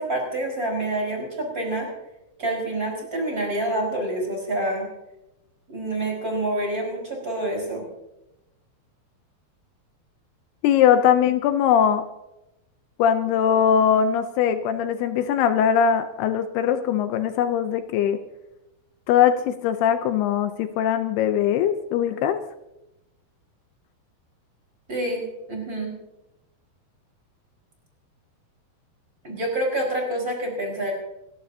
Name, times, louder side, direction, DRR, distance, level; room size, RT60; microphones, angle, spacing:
voice 1, 0.0-1.9 2.4-4.9 5.7-7.8 24.9-25.9 29.2-30.9, right 1 dB, 20° right, -1 dB, 4.9 m, -27 dB
voice 2, 10.6-12.1 13.0-18.2 19.1-22.4, left 8 dB, 80° left, 9 dB, 2.7 m, -21 dB
29.0 x 14.0 x 2.8 m, 0.93 s
omnidirectional pair, 4.7 m